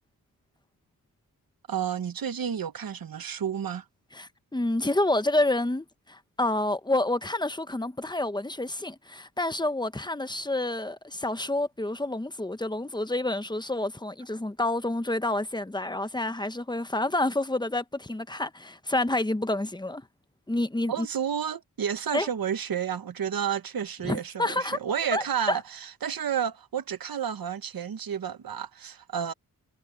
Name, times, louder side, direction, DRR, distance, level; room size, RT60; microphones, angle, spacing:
voice 1, 1.7-3.8 20.9-29.3, right 8 dB, 70° right, 1.1 m, -31 dB
voice 2, 4.1-20.0 20.5-21.1 22.1-22.3 24.0-24.8 25.1-25.6, left 2 dB, 10° left, 0.9 m, -28 dB
wide cardioid pair, 95°, 37 cm